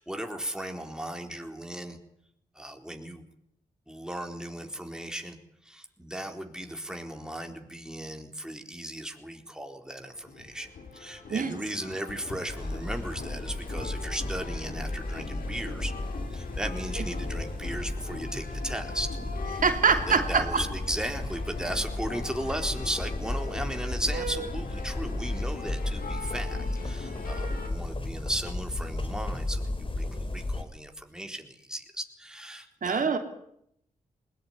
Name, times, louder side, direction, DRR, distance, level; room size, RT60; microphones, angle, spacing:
voice 1, 0.0-2.0 2.6-3.2 3.9-15.9 16.3-19.1 19.9-33.1, right 1 dB, 5° right, 4 dB, 4.1 m, -36 dB
sound 1, 10.0-27.7, left 4 dB, 75° left, 4.4 m, -42 dB
sound 2, 12.5-30.6, left 2 dB, 35° left, 4.1 m, -34 dB
voice 2, 19.5-20.6 24.1-24.5 32.8-33.2, right 5 dB, 65° right, 6 dB, 3.1 m, -25 dB
20.5 x 19.5 x 9.6 m, 0.74 s
cardioid pair, 50°, 15 cm